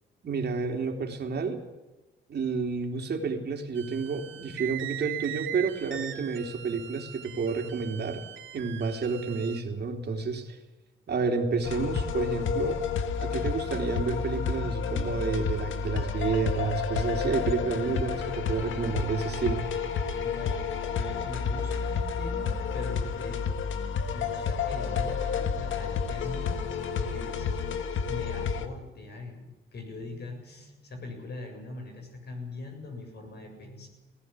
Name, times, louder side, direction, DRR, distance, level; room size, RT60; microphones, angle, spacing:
voice 1, 0.2-1.6 2.3-8.2 8.5-10.6 11.1-12.8 13.2-19.6, right 4 dB, 55° right, 4 dB, 3.5 m, -30 dB
sound 1, 3.8-9.6, right 13 dB, 75° right, 2.9 m, -40 dB
sound 2, 11.6-28.7, left 6 dB, 75° left, 1.7 m, -30 dB
voice 2, 20.2-20.7 21.0-23.6 24.1-26.6 27.0-27.8 28.1-33.9, left 3 dB, 55° left, 4 dB, 7.4 m, -41 dB
19.0 x 16.0 x 9.9 m, 1.1 s
cardioid pair, 85°, 20 cm